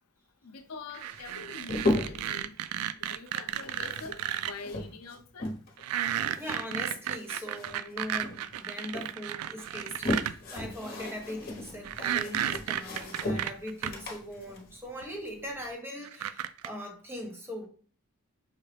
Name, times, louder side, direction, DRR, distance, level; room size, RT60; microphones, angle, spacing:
voice 1, 0.4-2.6 3.0-4.2 4.5-5.5, left 4 dB, 80° left, 7 dB, 0.6 m, -44 dB
sound 1, 0.9-4.5 5.8-10.3 11.8-13.9 15.0-15.1 16.0-16.7, right 11 dB, 85° right, 0.3 m, -33 dB
sound 2, 1.0-2.4 3.5-5.8 6.1-7.9 8.2-9.1 9.6-15.7, left 1 dB, 45° left, 1.0 m, -35 dB
voice 2, 6.4-17.7, equal, 10° right, 1 dB, 0.9 m, -40 dB
5.6 x 2.3 x 3.3 m, 0.41 s
head